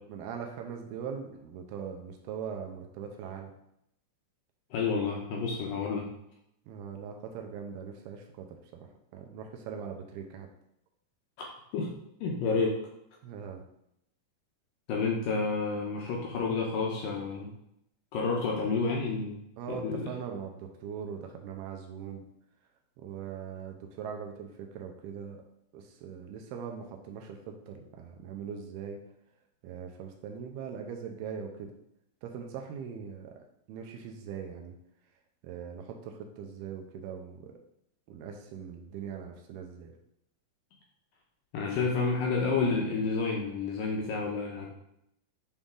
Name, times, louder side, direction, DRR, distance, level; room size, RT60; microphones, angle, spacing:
voice 1, 0.1-3.5 6.7-8.5 8.7-10.5 13.2-13.6 18.3-18.4 19.6-22.2 23.0-25.4 25.7-29.0 29.6-31.7 32.2-34.7 35.4-37.5 38.1-40.0, right 7 dB, 80° right, 3 dB, 2.6 m, -41 dB
voice 2, 4.7-6.1 11.4-11.9 12.2-12.9 14.9-17.5 18.1-19.4 19.7-20.1 41.5-44.7, left 4 dB, 75° left, -1 dB, 2.2 m, -30 dB
8.7 x 4.1 x 3.7 m, 0.77 s
omnidirectional pair, 4.7 m